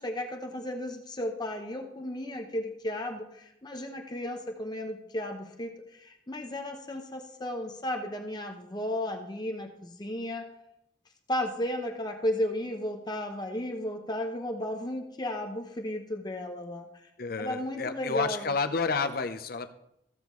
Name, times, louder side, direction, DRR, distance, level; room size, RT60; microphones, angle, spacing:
voice 1, 0.0-10.5 11.3-16.9 17.4-18.5, left 1 dB, 25° left, 3 dB, 0.8 m, -34 dB
voice 2, 17.2-19.7, left 4 dB, 55° left, 9 dB, 0.7 m, -30 dB
15.0 x 7.0 x 3.1 m, 0.77 s
head